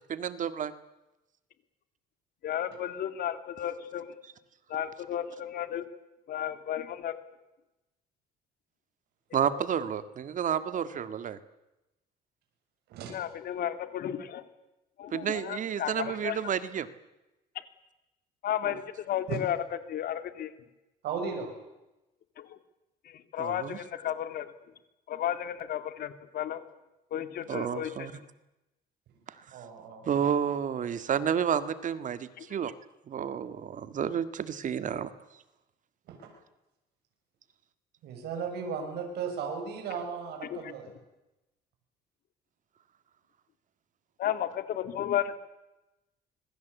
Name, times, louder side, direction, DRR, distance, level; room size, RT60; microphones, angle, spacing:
voice 1, 0.1-0.7 9.3-11.4 15.1-16.9 18.6-18.8 23.4-23.8 27.5-28.2 29.5-29.6 30.0-32.7 33.1-35.1, right 8 dB, 50° right, 12 dB, 1.9 m, -30 dB
voice 2, 2.4-4.1 4.7-5.8 6.3-7.1 9.5-9.6 13.1-14.4 15.0-16.4 18.4-19.6 19.9-20.5 22.4-22.6 23.1-24.5 25.1-26.6 27.1-28.1 32.4-32.5 40.5-40.6 44.2-45.4, left 10 dB, 65° left, 10 dB, 2.6 m, -33 dB
voice 3, 21.0-21.5 29.5-30.2 36.1-36.3 38.0-40.9, right 6 dB, 75° right, 3 dB, 6.7 m, -36 dB
25.5 x 23.0 x 8.3 m, 0.96 s
cardioid pair, 110°, 17 cm